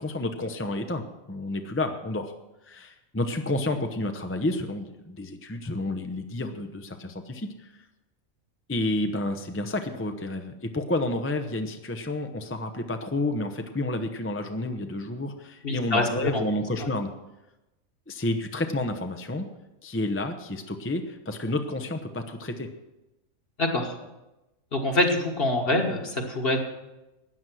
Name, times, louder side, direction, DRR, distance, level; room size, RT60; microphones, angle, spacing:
voice 1, 0.0-2.3 2.7-7.7 8.7-17.1 18.1-19.5 19.8-22.7, left 2 dB, 15° left, 6 dB, 0.6 m, -30 dB
voice 2, 15.6-16.4 16.8-16.9 23.6-24.0 24.7-26.6, left 2 dB, 45° left, 3 dB, 1.7 m, -25 dB
13.0 x 9.4 x 6.2 m, 1.0 s
omnidirectional pair, 1.4 m